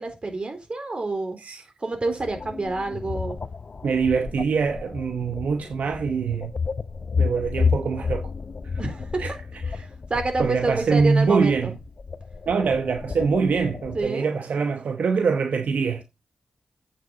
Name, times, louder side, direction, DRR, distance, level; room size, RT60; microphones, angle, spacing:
voice 1, 0.0-1.4 1.8-3.4 8.8-9.2 9.8-11.7 13.9-14.3, right 2 dB, 45° right, 4.0 m, -28 dB
sound 1, 2.2-14.1, left 5 dB, 55° left, 0.8 m, -31 dB
voice 2, 3.8-6.5 7.2-8.3 9.2-9.3 9.6-9.7 10.4-11.7 12.5-16.0, right 5 dB, 75° right, 1.0 m, -24 dB
8.6 x 7.8 x 4.0 m
cardioid pair, 45°, 3 cm